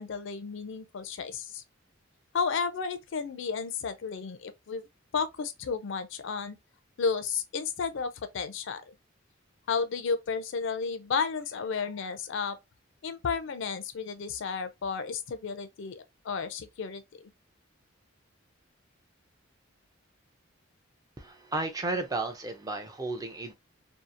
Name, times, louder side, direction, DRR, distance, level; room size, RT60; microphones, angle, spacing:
voice 1, 0.0-1.6 2.3-4.8 5.1-6.6 7.0-8.8 9.7-12.6 13.0-17.0, left 5 dB, 65° left, 0.4 m, -32 dB
voice 2, 21.2-23.5, right 2 dB, 20° right, 0.4 m, -33 dB
2.8 x 2.3 x 2.4 m
head